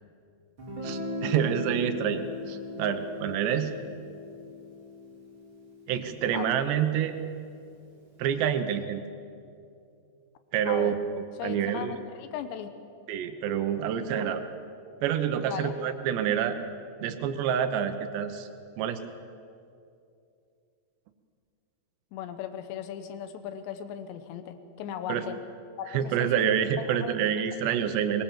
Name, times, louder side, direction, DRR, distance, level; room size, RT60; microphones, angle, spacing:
Guitar, 0.6-6.4, left 2 dB, 30° right, 4.0 m, -38 dB
voice 1, 0.8-3.7 5.9-7.2 8.2-9.0 10.5-11.0 11.4-12.0 13.1-14.4 15.0-16.6 17.0-18.5 18.8-19.0 25.1-25.3 25.9-28.2, right 9 dB, 90° right, 8 dB, 3.3 m, -27 dB
voice 2, 10.7-11.0 11.4-12.7 15.5-15.7 22.1-25.4 25.8-26.5 26.8-27.1, left 9 dB, 85° left, 10 dB, 3.3 m, -37 dB
23.0 x 22.0 x 7.4 m, 2.5 s
omnidirectional pair, 4.8 m